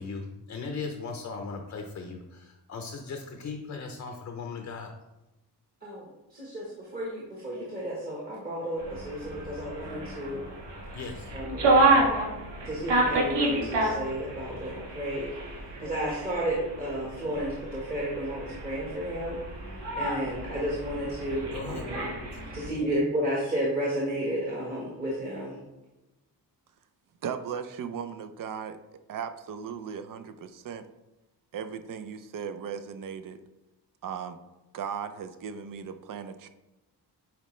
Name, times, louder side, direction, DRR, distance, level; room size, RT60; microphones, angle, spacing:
voice 1, 0.0-4.9 10.9-11.3 21.5-22.3, left 4 dB, 40° left, 4 dB, 0.6 m, -38 dB
voice 2, 6.3-10.5 11.3-11.9 12.6-15.5 15.8-19.4 20.0-22.1 22.5-25.6, equal, 20° right, -5 dB, 1.3 m, -32 dB
sound 1, 8.8-22.7, right 2 dB, 80° right, 1.8 m, -29 dB
voice 3, 27.2-28.8 29.1-30.8 31.5-33.4 34.0-34.4 34.7-36.5, right 7 dB, 50° right, 10 dB, 0.5 m, -37 dB
9.0 x 4.3 x 3.2 m, 1.0 s
wide cardioid pair, 170°, 41 cm